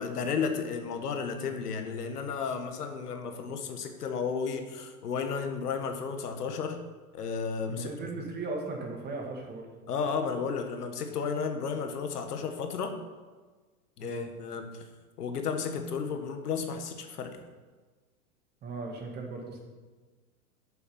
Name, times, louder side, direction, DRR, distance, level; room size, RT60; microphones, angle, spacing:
voice 1, 0.0-6.8 7.1-7.9 9.9-13.0 14.0-14.8 15.2-17.4, left 5 dB, 90° left, 6 dB, 1.4 m, -33 dB
voice 2, 7.7-9.7 14.0-14.3 18.6-19.6, right 3 dB, 20° right, 1 dB, 1.7 m, -37 dB
8.4 x 7.0 x 5.6 m, 1.4 s
hypercardioid pair, 135°, 45 cm